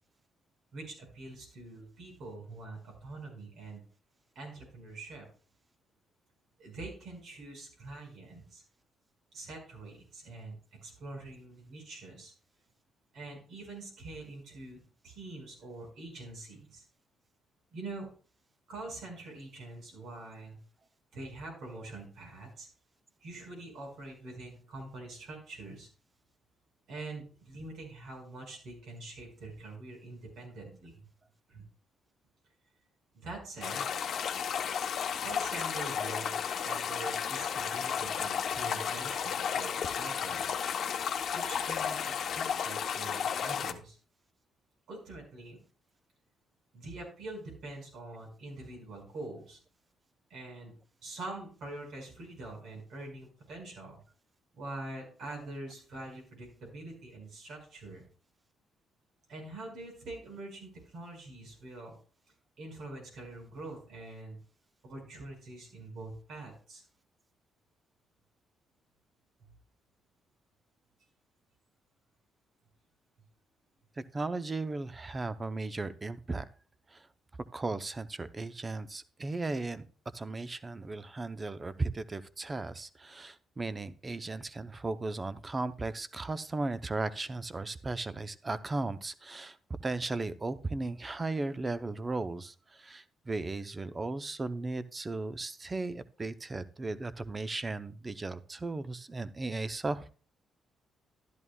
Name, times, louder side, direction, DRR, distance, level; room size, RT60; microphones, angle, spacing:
voice 1, 0.7-3.8 4.4-5.3 6.6-8.6 9.3-10.6 10.8-12.3 13.1-16.8 17.7-18.1 18.7-20.6 21.1-22.7 23.2-25.9 26.9-31.0 31.5-31.6 33.1-33.9 35.2-40.6 41.3-44.0 44.9-45.6 46.7-49.6 50.3-50.7 51.0-54.0 54.5-58.0 59.3-61.9 62.6-64.4 64.8-66.8, right 2 dB, 70° right, 0 dB, 5.3 m, -44 dB
sound 1, 33.6-43.7, left 7 dB, 65° left, 0.9 m, -33 dB
voice 2, 74.0-76.4 76.9-77.1 77.5-79.8 80.1-89.6 89.8-100.1, right 3 dB, 25° right, 13 dB, 0.6 m, -36 dB
12.5 x 11.0 x 2.3 m, 0.39 s
cardioid pair, 90°, 0 cm